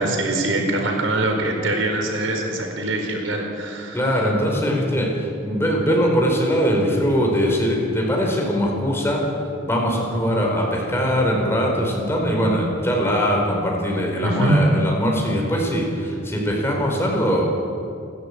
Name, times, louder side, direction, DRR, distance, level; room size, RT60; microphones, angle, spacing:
voice 1, 0.0-4.3 14.2-14.6, right 2 dB, 75° right, 3 dB, 4.5 m, -23 dB
voice 2, 3.9-9.2 9.7-17.4, equal, 10° left, -1 dB, 4.7 m, -21 dB
29.0 x 13.0 x 8.7 m, 2.5 s
head